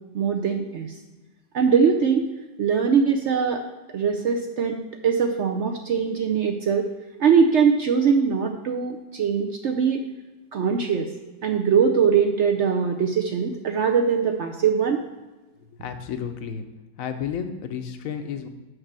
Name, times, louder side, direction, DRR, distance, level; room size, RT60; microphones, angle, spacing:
voice 1, 0.1-0.9 1.5-2.3 2.6-3.6 3.9-6.9 7.2-10.0 10.5-11.1 11.4-15.0, right 6 dB, 75° right, 4 dB, 0.6 m, -21 dB
voice 2, 15.8-16.6 17.0-18.5, left 7 dB, 60° left, 7 dB, 1.0 m, -31 dB
6.5 x 5.9 x 6.0 m, 1.2 s
omnidirectional pair, 1.9 m